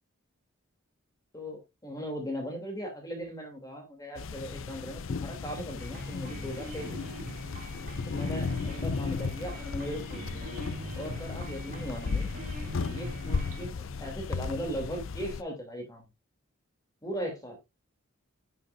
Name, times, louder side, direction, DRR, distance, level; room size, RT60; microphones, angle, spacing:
voice 1, 1.3-7.0 8.1-10.6 10.9-12.3 12.9-16.0 17.0-17.6, equal, 15° left, 3 dB, 3.0 m, -38 dB
sound 1, 4.2-15.4, left 4 dB, 65° left, 0.5 m, -35 dB
sound 2, 5.8-13.7, right 1 dB, 40° right, 2.7 m, -43 dB
10.0 x 8.5 x 2.6 m, 0.23 s
head